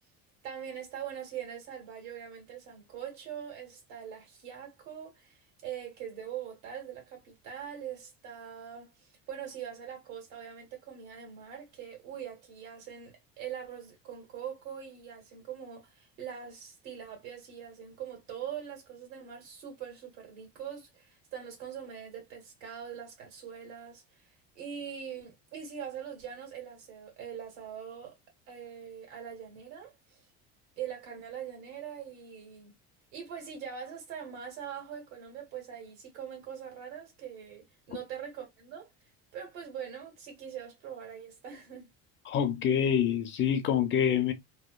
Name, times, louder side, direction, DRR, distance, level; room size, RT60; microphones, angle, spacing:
voice 1, 0.4-24.3 24.5-28.2 28.5-30.2 30.8-32.7 33.1-38.9 39.3-41.9, right 8 dB, 80° right, 1.6 m, -42 dB
voice 2, 42.3-44.3, left 8 dB, 35° left, 0.5 m, -26 dB
2.9 x 2.0 x 2.2 m
cardioid pair, 125°, 33 cm